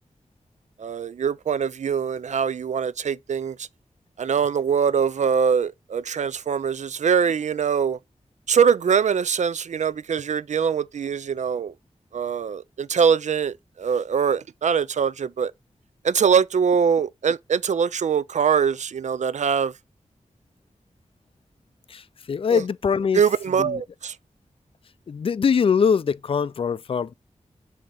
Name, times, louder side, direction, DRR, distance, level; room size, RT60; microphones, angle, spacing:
voice 1, 0.8-3.7 4.2-8.0 8.5-11.7 12.1-15.5 16.0-19.7 22.5-22.6 23.1-24.2, right 7 dB, 75° right, 0.4 m, -23 dB
voice 2, 22.3-23.2 23.6-23.7 25.1-27.1, left 6 dB, 50° left, 0.4 m, -22 dB
7.2 x 2.9 x 5.2 m
wide cardioid pair, 70°, 12 cm